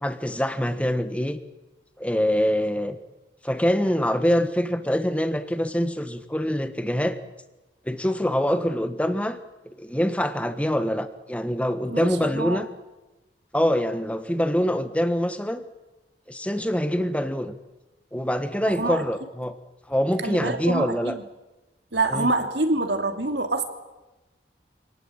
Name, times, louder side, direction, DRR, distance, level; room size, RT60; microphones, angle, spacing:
voice 1, 0.0-1.4 2.0-3.0 3.4-7.2 7.8-9.4 9.6-12.7 13.5-15.6 16.3-17.5 18.1-19.5 19.9-21.1 22.1-22.3, equal, 5° left, 9 dB, 1.3 m, -24 dB
voice 2, 11.9-12.6 18.7-19.0 20.2-21.2 21.9-23.6, right 2 dB, 70° right, 5 dB, 2.8 m, -26 dB
26.5 x 19.0 x 8.9 m, 1.1 s
head